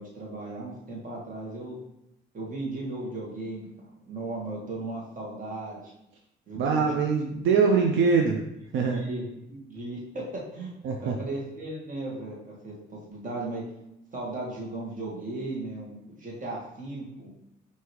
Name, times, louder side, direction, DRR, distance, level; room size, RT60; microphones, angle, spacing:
voice 1, 0.0-1.7 2.3-3.7 4.0-5.8 6.5-6.9 8.7-10.7 11.0-13.6 14.1-17.3, right 2 dB, 40° right, -3 dB, 1.4 m, -36 dB
voice 2, 6.5-8.4 8.7-9.1 10.8-11.2, right 5 dB, 80° right, 2 dB, 0.5 m, -23 dB
4.8 x 2.7 x 3.1 m, 0.84 s
cardioid pair, 90°, 20 cm